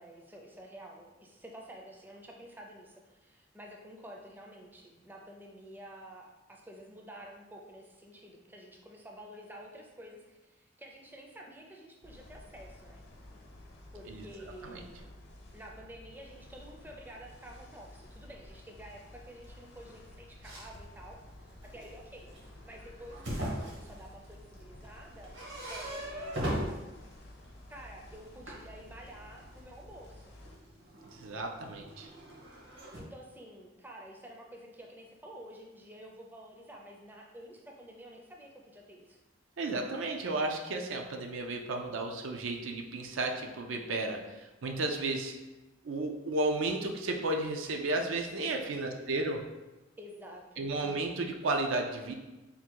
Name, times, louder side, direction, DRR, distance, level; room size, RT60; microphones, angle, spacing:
voice 1, 0.0-13.0 13.9-15.1 15.5-22.3 22.6-25.4 25.7-26.8 27.7-30.4 33.0-39.2 48.7-48.9 50.0-50.7, equal, 10° right, 0 dB, 0.4 m, -50 dB
sound 1, 12.0-30.6, left 1 dB, 55° left, 0.6 m, -53 dB
sound 2, 19.4-27.8 28.1-33.0, equal, 65° right, 1.0 m, -41 dB
voice 2, 31.1-32.1 39.6-45.3 45.8-49.4 50.6-52.1, right 2 dB, 80° right, 3 dB, 0.5 m, -33 dB
3.6 x 2.2 x 4.4 m, 1.1 s
head